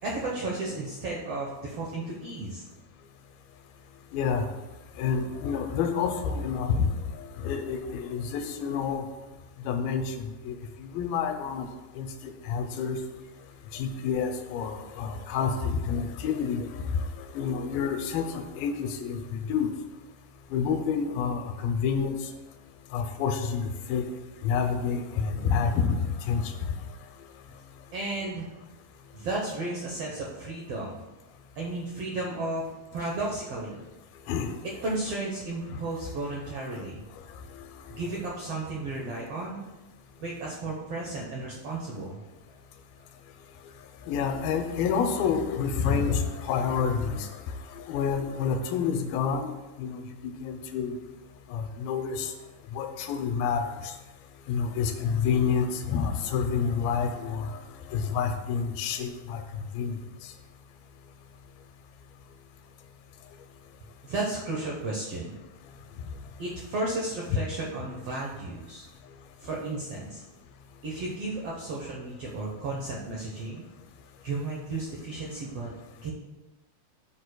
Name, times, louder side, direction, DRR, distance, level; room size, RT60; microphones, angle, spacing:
voice 1, 0.0-2.6 27.9-28.5 29.1-31.0 31.5-33.8 34.8-37.0 37.9-39.6 40.2-42.2 64.0-65.3 66.4-68.8 69.4-70.2 70.8-73.6 74.2-75.7 76.0-76.1, right 2 dB, 80° right, -3 dB, 1.3 m, -33 dB
voice 2, 4.1-4.4 5.0-6.9 7.4-9.0 9.7-11.7 12.0-13.0 13.7-17.0 17.3-19.7 20.5-22.2 22.9-24.0 24.4-26.0 26.3-26.4 34.3-34.5 44.1-47.3 47.7-49.5 49.8-50.0 50.4-50.9 51.5-52.3 52.8-53.9 54.5-57.5 57.9-59.4 59.8-60.0, left 6 dB, 80° left, 6 dB, 2.5 m, -28 dB
12.5 x 7.2 x 2.3 m, 1.1 s
omnidirectional pair, 4.3 m